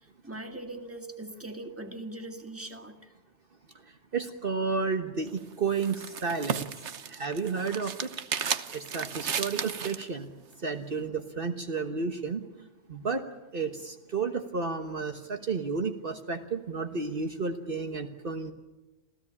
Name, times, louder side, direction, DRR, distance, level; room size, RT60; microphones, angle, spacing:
voice 1, 0.2-3.0, right 2 dB, 10° right, 5 dB, 2.0 m, -40 dB
voice 2, 4.1-6.7 7.1-8.1 8.7-10.3 10.6-12.4 12.9-13.2 13.5-18.5, right 4 dB, 55° right, 7 dB, 1.5 m, -32 dB
sound 1, 5.3-10.1, right 7 dB, 80° right, 1.3 m, -34 dB
27.5 x 16.0 x 8.7 m, 1.1 s
omnidirectional pair, 1.2 m